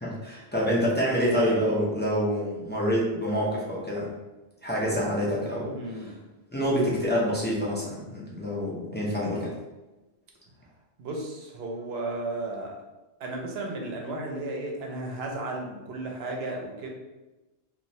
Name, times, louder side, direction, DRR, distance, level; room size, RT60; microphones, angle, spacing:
voice 1, 0.0-4.1 4.6-5.7 6.5-9.5, equal, 15° left, -6 dB, 0.4 m, -27 dB
voice 2, 5.6-6.2 10.6-10.7 11.0-12.8 13.2-16.9, right 2 dB, 75° right, 1 dB, 0.8 m, -34 dB
3.0 x 2.3 x 2.6 m, 1.1 s
omnidirectional pair, 1.1 m